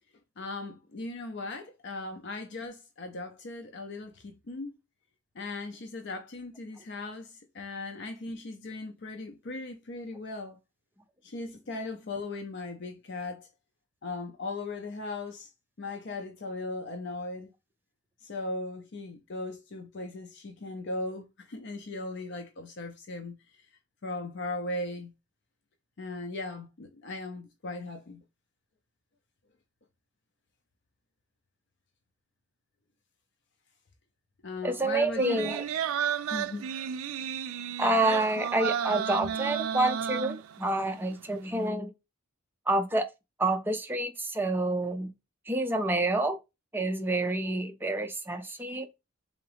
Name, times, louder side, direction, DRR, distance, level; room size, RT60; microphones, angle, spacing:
voice 1, 0.4-4.7 5.4-10.6 11.2-13.5 14.0-15.5 15.8-17.5 18.2-23.3 24.0-25.1 26.0-28.2 34.4-35.5 36.3-36.7, left 2 dB, 55° left, 0.5 m, -38 dB
voice 2, 34.6-35.6 37.8-41.9 42.7-43.1 43.4-45.1 45.5-46.4 46.7-48.9, right 2 dB, 10° right, 0.4 m, -28 dB
sound 1, 35.2-40.8 41.2-41.3, right 8 dB, 75° right, 0.3 m, -32 dB
3.7 x 3.5 x 3.3 m
head